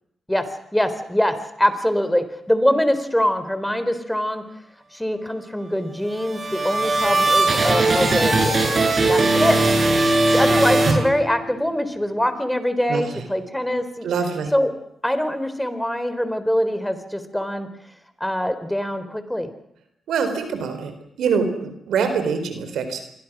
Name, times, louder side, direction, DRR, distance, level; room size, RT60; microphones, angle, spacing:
voice 1, 0.7-4.4 4.9-9.7 10.3-14.1 14.5-14.7 15.0-17.7 18.2-19.5, equal, 5° left, 11 dB, 4.2 m, -23 dB
sound 1, 6.0-11.6, right 2 dB, 50° right, 8.0 m, -19 dB
voice 2, 12.9-13.2 14.0-14.5 20.1-20.9 21.2-23.0, right 6 dB, 80° right, 8 dB, 4.2 m, -24 dB
27.0 x 22.5 x 6.3 m, 0.77 s
supercardioid pair, 50°, 0 cm